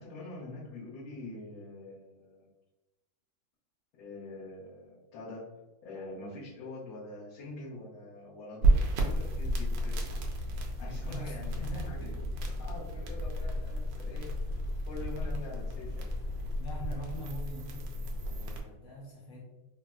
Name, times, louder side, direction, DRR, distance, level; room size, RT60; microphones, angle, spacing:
voice 1, 0.0-2.5 4.0-5.5 5.8-10.1 10.8-12.0 12.6-14.4 14.8-16.1, left 2 dB, 85° left, -10 dB, 1.7 m, -44 dB
sound 1, 8.6-18.6, right 1 dB, 75° right, 1.1 m, -32 dB
sound 2, 9.1-16.6, left 2 dB, 35° left, 0.7 m, -41 dB
voice 2, 11.1-12.2 16.6-19.4, equal, 70° left, -2 dB, 0.9 m, -43 dB
4.3 x 2.0 x 2.3 m, 1.0 s
omnidirectional pair, 2.1 m